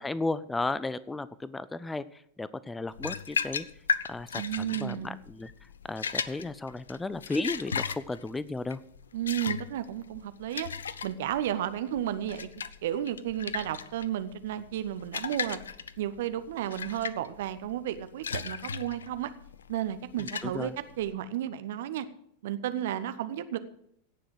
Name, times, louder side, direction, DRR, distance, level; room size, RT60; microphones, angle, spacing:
voice 1, 0.0-2.0 2.4-3.6 4.1-5.5 5.9-8.8 20.2-20.7, left 3 dB, 10° left, 18 dB, 0.4 m, -34 dB
sound 1, 2.9-21.1, left 6 dB, 70° left, 0.6 m, -36 dB
voice 2, 4.3-5.2 9.1-10.7 11.0-12.5 12.8-15.6 16.0-19.3 19.7-22.1 22.4-23.6, right 11 dB, 55° right, 12 dB, 0.9 m, -33 dB
17.0 x 6.1 x 6.4 m, 0.71 s
figure-of-eight pair, 90°, 0 cm